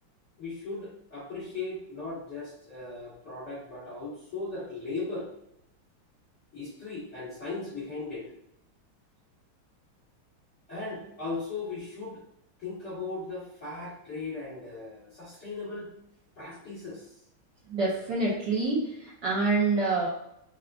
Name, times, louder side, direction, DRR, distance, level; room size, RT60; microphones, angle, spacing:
voice 1, 0.4-5.3 6.5-8.3 10.7-12.2 12.6-15.9 16.4-17.2, left 3 dB, 35° left, -9 dB, 1.6 m, -37 dB
voice 2, 17.7-20.1, right 3 dB, 65° right, -6 dB, 1.2 m, -27 dB
5.8 x 2.3 x 2.3 m, 0.79 s
omnidirectional pair, 2.3 m